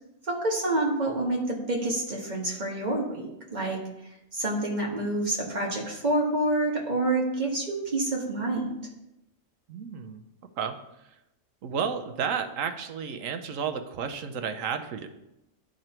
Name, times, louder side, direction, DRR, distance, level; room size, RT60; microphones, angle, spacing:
voice 1, 0.3-3.2 3.5-3.8 4.3-8.7, right 2 dB, 35° right, -2 dB, 1.6 m, -27 dB
voice 2, 9.7-10.2 10.6-10.8 11.6-15.1, right 7 dB, 85° right, 8 dB, 1.1 m, -32 dB
10.5 x 3.9 x 4.4 m, 0.89 s
omnidirectional pair, 1.3 m